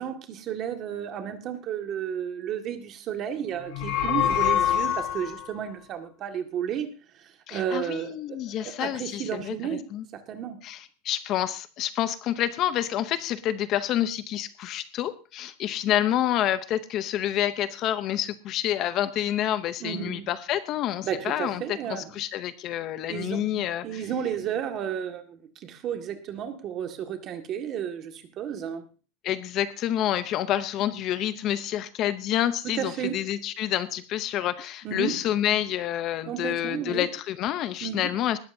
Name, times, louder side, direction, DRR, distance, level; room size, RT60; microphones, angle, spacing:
voice 1, 0.0-6.9 7.2-9.9 10.1-10.6 19.8-20.3 21.0-22.1 23.1-28.8 32.8-33.2 34.8-35.3 36.3-37.1 37.8-38.1, right 9 dB, 30° right, 6 dB, 1.8 m, -33 dB
sound 1, 3.6-5.5, left 10 dB, 55° left, 4.2 m, -25 dB
voice 2, 7.5-10.0 10.6-24.0 29.2-38.4, left 12 dB, 30° left, 13 dB, 0.6 m, -28 dB
19.5 x 13.0 x 2.7 m, 0.34 s
supercardioid pair, 175°, 0 cm